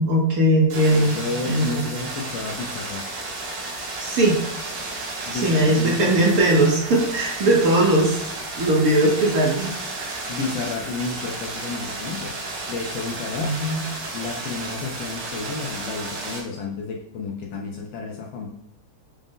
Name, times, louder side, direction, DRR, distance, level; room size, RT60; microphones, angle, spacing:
voice 1, 0.0-1.1 1.5-1.9 4.0-4.4 5.3-8.2 8.6-10.3 13.4-13.8, right 1 dB, 60° right, -2 dB, 1.0 m, -19 dB
sound 1, 0.7-16.4, right 2 dB, 80° right, 1.9 m, -33 dB
voice 2, 0.9-3.0 5.3-6.2 10.1-12.3 12.7-13.6 14.1-18.5, left 4 dB, 75° left, 1 dB, 1.2 m, -31 dB
5.1 x 2.1 x 3.5 m, 0.80 s
omnidirectional pair, 2.3 m